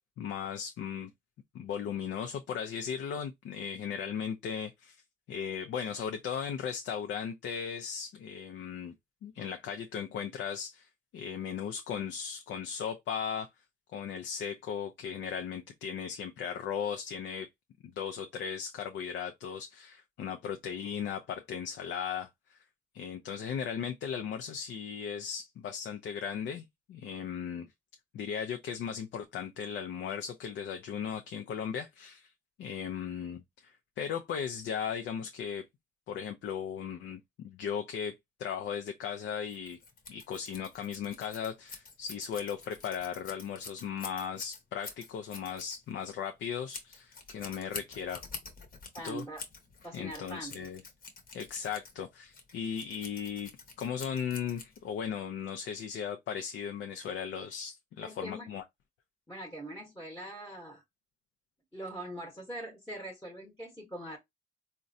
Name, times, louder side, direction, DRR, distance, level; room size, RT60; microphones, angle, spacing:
voice 1, 0.2-1.1 1.5-5.0 5.3-8.9 9.2-10.9 11.1-13.5 13.9-17.5 18.0-22.3 22.9-27.7 28.1-32.3 32.6-35.7 36.1-39.8 40.1-48.2 49.0-49.2 49.9-50.8 51.3-53.5 53.8-58.6, left 7 dB, 70° left, 0.5 m, -37 dB
Scissors, 39.5-55.1, left 4 dB, 45° left, 1.0 m, -48 dB
voice 2, 48.9-49.4 49.8-50.7 58.0-58.5 59.3-60.8 61.7-64.2, right 1 dB, 10° left, 1.0 m, -42 dB
3.7 x 2.1 x 2.6 m
cardioid pair, 90°, 20 cm